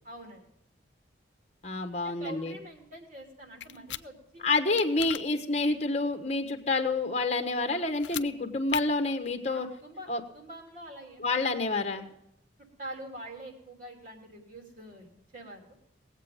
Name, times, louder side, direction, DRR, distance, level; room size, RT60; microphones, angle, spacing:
voice 1, 0.0-0.5 1.9-4.5 9.4-10.1 10.3-12.1 12.8-15.1 15.3-15.7, right 1 dB, 45° right, 1 dB, 3.0 m, -45 dB
voice 2, 1.6-2.5 4.4-9.7 10.1-10.2 11.2-12.0, left 3 dB, 35° left, 6 dB, 1.3 m, -28 dB
sound 1, 3.6-4.0 4.8-5.2 7.9-8.3 8.7-8.8, left 12 dB, 70° left, 0.5 m, -36 dB
19.5 x 8.2 x 5.3 m, 0.79 s
head